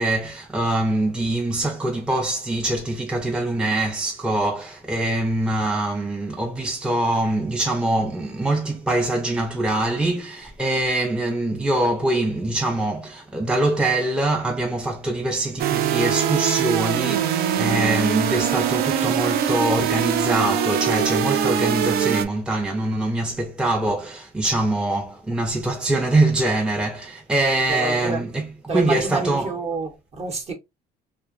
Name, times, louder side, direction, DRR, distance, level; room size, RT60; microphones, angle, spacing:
voice 1, 0.0-29.5, right 2 dB, 5° right, 0.5 m, -23 dB
sound 1, 15.6-22.3, right 8 dB, 65° right, 0.4 m, -22 dB
voice 2, 27.7-28.2 28.7-30.5, right 3 dB, 40° right, 0.9 m, -28 dB
2.7 x 2.1 x 2.4 m
cardioid pair, 110°, 17 cm